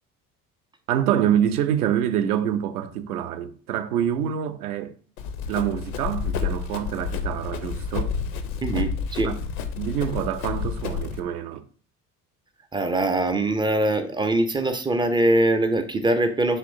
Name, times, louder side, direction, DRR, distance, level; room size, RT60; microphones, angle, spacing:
voice 1, 0.9-5.0 5.5-8.1 9.2-9.3 9.8-11.6, right 10 dB, 75° right, 0.6 m, -26 dB
Run, 5.2-11.2, left 6 dB, 70° left, 0.7 m, -30 dB
voice 2, 8.6-9.3 12.7-16.6, right 2 dB, 10° right, 0.3 m, -22 dB
5.6 x 2.9 x 2.6 m
figure-of-eight pair, 55°, 45 cm